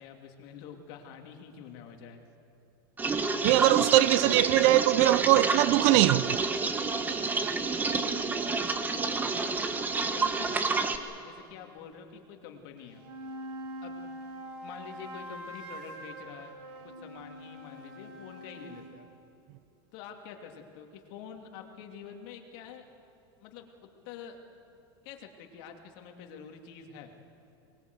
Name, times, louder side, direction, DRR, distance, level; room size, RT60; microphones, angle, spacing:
voice 1, 0.0-2.2 9.4-9.7 10.1-10.9 11.2-13.0 13.8-14.0 14.6-16.5 16.8-19.1 19.9-22.8 23.4-23.7 24.0-24.4 25.0-27.1, left 7 dB, 55° left, 2.7 m, -46 dB
sound 1, 3.0-11.0, right 4 dB, 15° right, 1.1 m, -29 dB
voice 2, 3.4-6.4, right 16 dB, 50° right, 0.5 m, -22 dB
sound 2, 12.8-19.0, right 1 dB, 65° right, 5.2 m, -44 dB
24.0 x 20.5 x 8.1 m
supercardioid pair, 140°, 13 cm